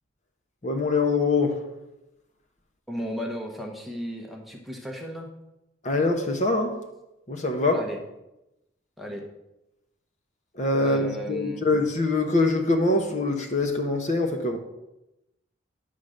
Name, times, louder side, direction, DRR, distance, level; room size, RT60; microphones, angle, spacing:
voice 1, 0.6-1.6 5.8-6.8 7.3-7.9 10.5-14.6, left 2 dB, 40° left, 0.9 m, -24 dB
voice 2, 2.9-5.3 7.7-8.0 9.0-9.2 10.8-11.7, equal, ahead, 0.9 m, -35 dB
9.9 x 3.7 x 6.4 m
head